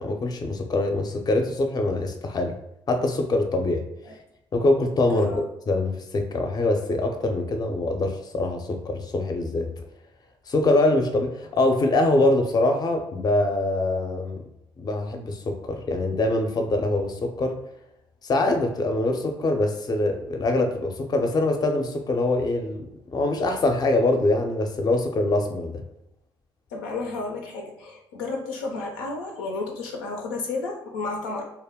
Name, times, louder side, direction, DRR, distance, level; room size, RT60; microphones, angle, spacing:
voice 1, 0.0-2.5 2.9-3.8 4.5-9.7 10.5-14.4 14.8-17.6 18.2-25.8, left 2 dB, 40° left, 5 dB, 0.5 m, -24 dB
voice 2, 5.1-5.4 26.7-31.5, left 3 dB, 90° left, 1 dB, 0.5 m, -32 dB
2.2 x 2.1 x 3.5 m, 0.85 s
hypercardioid pair, 60°, 11 cm